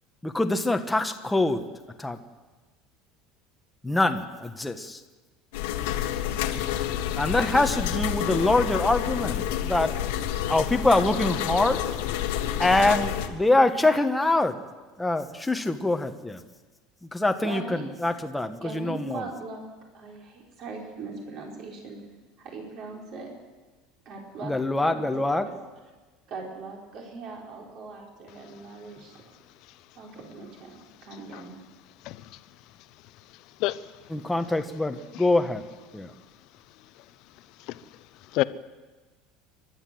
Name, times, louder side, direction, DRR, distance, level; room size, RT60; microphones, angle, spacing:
voice 1, 0.2-1.6 2.0-2.2 3.8-5.0 7.2-9.9 10.5-11.8 12.6-14.6 15.0-16.4 17.1-19.2 24.4-25.5 34.1-35.6 35.9-36.1, left 2 dB, 5° left, 6 dB, 1.2 m, -24 dB
sound 1, 5.5-13.3, left 11 dB, 90° left, 1.7 m, -29 dB
voice 2, 17.4-18.2 18.6-19.6 19.9-22.0 22.4-23.3 24.0-24.5 24.8-25.6 26.3-29.2 29.9-31.6, right 4 dB, 45° right, 0 dB, 4.9 m, -40 dB
voice 3, 32.0-32.4 33.2-34.1 35.1-35.3 37.0-37.1 37.4-38.4, left 17 dB, 55° left, 15 dB, 0.8 m, -32 dB
29.0 x 12.0 x 7.8 m, 1.3 s
cardioid pair, 150°, 0 cm